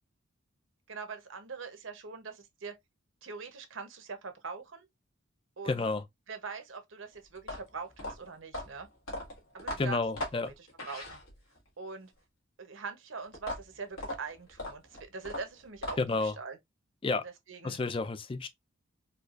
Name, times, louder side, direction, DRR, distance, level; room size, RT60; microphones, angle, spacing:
voice 1, 0.9-2.8 3.2-4.9 5.6-5.9 6.3-8.9 9.5-10.0 10.4-11.2 11.8-12.1 12.6-16.6 17.2-17.8, right 5 dB, 65° right, 0.8 m, -43 dB
voice 2, 5.7-6.0 9.8-10.5 16.0-16.3 17.0-17.2 17.6-18.5, left 3 dB, 25° left, 0.3 m, -30 dB
sound 1, 7.4-11.7 13.3-16.3, left 1 dB, 80° left, 1.7 m, -39 dB
4.5 x 2.3 x 2.4 m
head